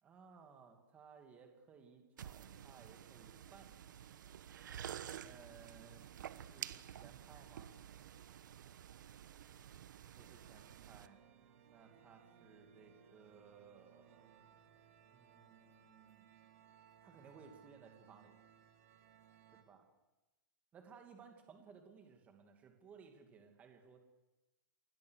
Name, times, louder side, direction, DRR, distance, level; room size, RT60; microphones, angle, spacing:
voice 1, 0.0-4.4 5.2-6.2 6.5-7.7 10.2-11.2 11.7-14.5 15.1-16.2 17.0-18.4 19.6-19.9 20.7-24.0, right 6 dB, 15° right, 4 dB, 2.5 m, -60 dB
sound 1, 2.2-11.1, right 9 dB, 65° right, 1.2 m, -51 dB
sound 2, 10.1-19.6, right 8 dB, 45° right, 2.6 m, -64 dB
29.0 x 21.5 x 6.5 m, 1.1 s
supercardioid pair, 175°, 11 cm